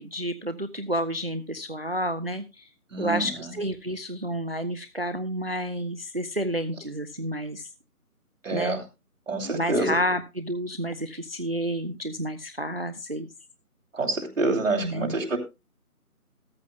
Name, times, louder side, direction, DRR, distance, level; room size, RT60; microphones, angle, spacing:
voice 1, 0.0-2.7 3.0-7.7 8.5-8.8 9.4-13.3 14.8-15.2, equal, 40° right, 11 dB, 0.6 m, -30 dB
voice 2, 2.9-3.2 8.4-8.8 9.3-10.0 13.9-15.4, right 3 dB, 55° right, 1 dB, 2.9 m, -26 dB
14.5 x 13.5 x 2.2 m, 0.25 s
figure-of-eight pair, 170°, 46 cm